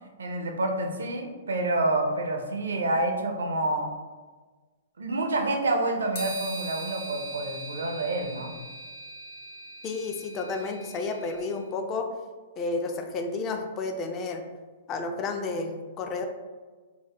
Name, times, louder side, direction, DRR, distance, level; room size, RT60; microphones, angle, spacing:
voice 1, 0.2-3.9 5.0-8.5, right 2 dB, 70° right, 3 dB, 0.5 m, -28 dB
sound 1, 6.1-11.4, right 2 dB, 60° left, 1.2 m, -40 dB
voice 2, 9.8-12.1 12.6-14.4 14.9-16.2, left 3 dB, 30° left, 5 dB, 0.4 m, -31 dB
3.7 x 2.1 x 2.9 m, 1.4 s
figure-of-eight pair, 110°, 0 cm